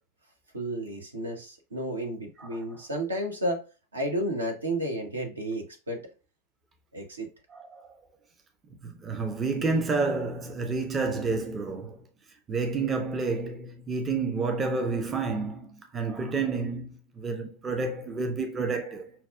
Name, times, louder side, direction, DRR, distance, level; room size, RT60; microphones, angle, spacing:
voice 1, 0.5-3.6 3.9-6.0 6.9-7.3, right 1 dB, 75° right, 0.8 m, -32 dB
voice 2, 7.5-7.9 8.8-12.0 12.5-19.1, right 4 dB, 20° right, 0.5 m, -30 dB
5.7 x 2.2 x 2.3 m
figure-of-eight pair, 90°, 0 cm